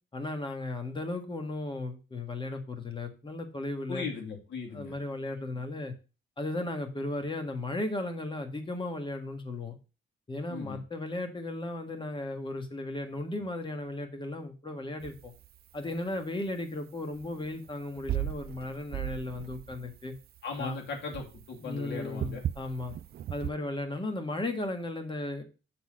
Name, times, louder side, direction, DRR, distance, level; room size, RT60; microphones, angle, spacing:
voice 1, 0.1-4.1 4.7-5.9 6.4-9.8 10.3-15.3 15.7-20.1 20.6-20.8 21.6-22.9 23.3-25.4, left 2 dB, 25° left, 6 dB, 1.7 m, -35 dB
voice 2, 3.9-4.9 10.5-10.8 20.4-22.4, left 4 dB, 65° left, 0 dB, 2.8 m, -38 dB
sound 1, 15.0-15.5 15.8-15.9 17.1-20.6 21.1-23.5, right 12 dB, 50° right, 0.4 m, -37 dB
6.8 x 4.2 x 6.4 m, 0.32 s
cardioid pair, 90°, 20 cm